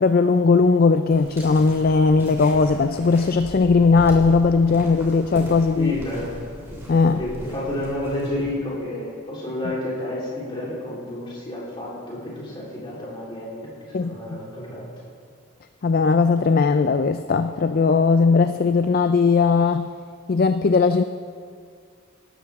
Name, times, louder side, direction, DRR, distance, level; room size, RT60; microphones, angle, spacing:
voice 1, 0.0-5.9 6.9-7.2 13.9-14.4 15.8-19.9 20.3-21.0, left 4 dB, 40° left, 9 dB, 0.3 m, -18 dB
sound 1, 1.1-8.5, equal, 10° right, 2.8 m, -38 dB
voice 2, 5.7-6.5 7.1-14.9, left 1 dB, 25° left, -7 dB, 3.8 m, -30 dB
19.0 x 12.5 x 3.6 m, 2.1 s
head